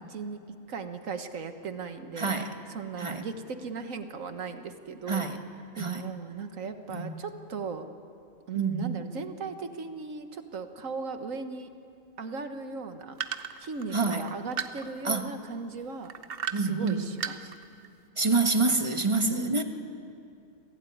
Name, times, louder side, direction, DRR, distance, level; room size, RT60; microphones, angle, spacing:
voice 1, 0.1-0.4 0.7-2.4 2.7-5.3 5.8-7.9 8.5-11.7 12.2-13.2 13.6-16.1 16.6-17.5 19.2-19.6, right 4 dB, 80° right, 8 dB, 1.7 m, -37 dB
voice 2, 2.2-2.5 3.0-3.3 5.1-5.4 5.7-6.1 6.9-7.1 8.5-9.0 13.9-14.3 15.0-15.4 16.5-17.1 18.2-19.6, right 3 dB, 25° right, 6 dB, 1.5 m, -27 dB
sound 1, 13.2-15.2 16.0-16.9 17.2-17.9, right 8 dB, 50° right, 1.0 m, -34 dB
27.5 x 17.0 x 9.3 m, 2.5 s
omnidirectional pair, 1.3 m